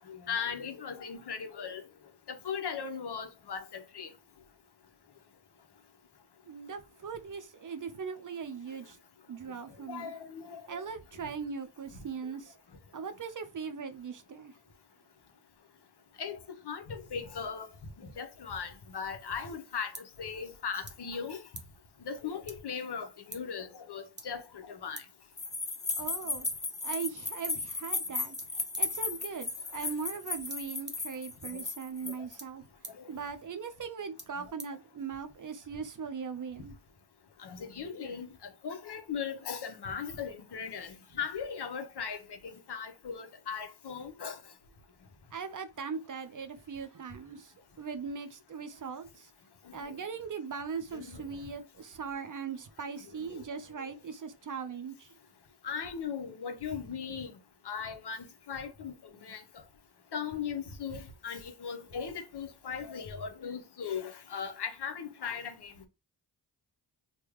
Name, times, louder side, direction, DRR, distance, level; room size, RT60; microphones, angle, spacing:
voice 1, 0.1-1.8 2.3-4.1 9.9-10.6 16.2-16.4 16.7-17.7 18.0-21.4 22.0-25.0 31.5-31.6 33.0-33.1 37.4-38.3 38.6-44.4 50.9-51.2 53.2-53.4 55.6-57.3 57.6-59.4 60.1-65.7, left 6 dB, 60° left, 0.9 m, -38 dB
voice 2, 6.5-9.0 9.3-10.1 10.7-12.5 12.9-14.5 26.0-26.5 26.8-28.4 28.8-32.6 33.1-36.7 45.3-49.3 49.7-55.1, right 6 dB, 45° right, 0.6 m, -40 dB
sound 1, 19.2-35.5, right 2 dB, 25° right, 1.0 m, -53 dB
sound 2, 25.4-32.4, left 3 dB, 15° left, 0.5 m, -35 dB
3.4 x 2.3 x 3.1 m
cardioid pair, 50°, 46 cm